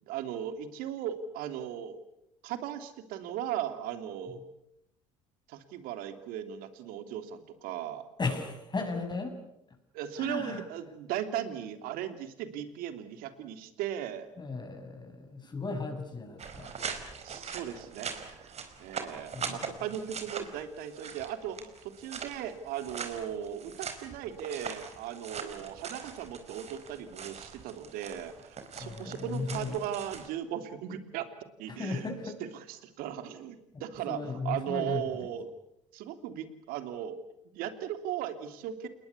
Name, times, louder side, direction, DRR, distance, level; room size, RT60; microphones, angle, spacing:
voice 1, 0.0-2.0 2.4-4.4 5.5-8.1 9.9-14.3 17.2-31.3 31.6-35.5 35.9-37.2 37.5-38.9, right 10 dB, 65° right, 9 dB, 3.0 m, -37 dB
voice 2, 8.2-9.3 10.2-10.6 14.4-16.7 19.3-19.7 28.8-29.7 31.7-32.4 34.1-35.0, left 3 dB, 25° left, 5 dB, 7.0 m, -35 dB
sound 1, 16.4-30.3, right 6 dB, 45° right, 4.6 m, -42 dB
28.5 x 21.0 x 8.4 m, 0.85 s
hypercardioid pair, 60°, 16 cm